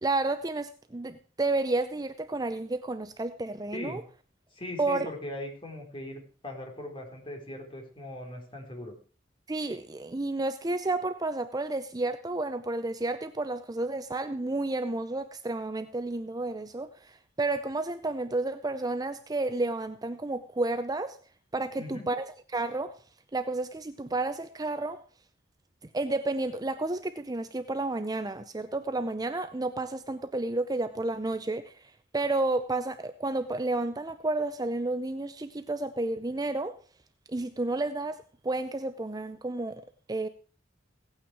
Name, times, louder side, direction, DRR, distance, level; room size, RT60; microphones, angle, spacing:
voice 1, 0.0-4.0 4.8-5.1 9.5-21.2 21.5-23.0 23.3-25.0 25.9-36.8 37.3-40.3, right 2 dB, 20° right, 0.6 m, -31 dB
voice 2, 3.7-4.0 4.5-8.9 21.8-22.1, left 1 dB, 30° left, 3.8 m, -40 dB
16.5 x 8.9 x 4.8 m
head